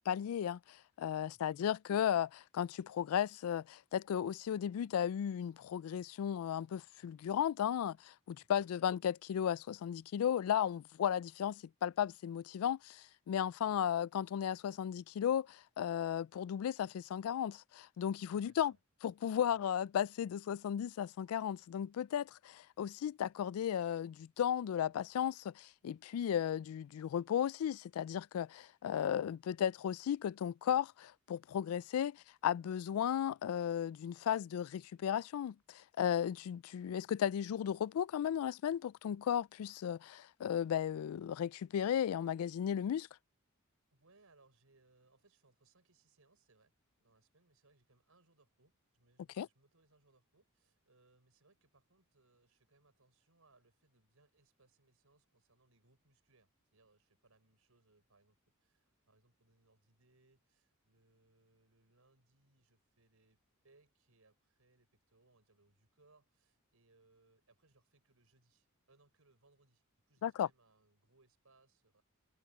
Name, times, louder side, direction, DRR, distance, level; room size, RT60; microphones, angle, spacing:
voice 1, 0.0-18.7 19.0-43.1 49.4-49.5 70.2-70.5, left 9 dB, 75° left, 0.3 m, -35 dB
voice 2, 1.3-1.6 8.5-8.9 18.4-18.8 19.5-19.7 43.9-63.4 63.6-72.0, right 3 dB, 75° right, 4.9 m, -71 dB
head